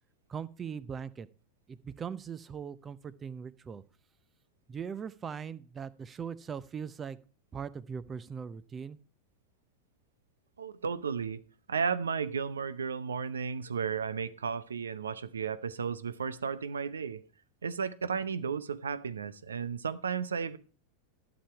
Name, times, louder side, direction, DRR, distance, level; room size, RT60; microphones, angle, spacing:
voice 1, 0.3-1.3 1.7-3.8 4.7-7.2 7.5-9.0, right 7 dB, 25° right, 0.7 m, -40 dB
voice 2, 10.6-11.4 11.7-17.2 17.6-20.6, right 6 dB, 85° right, 0.7 m, -34 dB
11.5 x 7.2 x 4.6 m
hypercardioid pair, 95°, 0 cm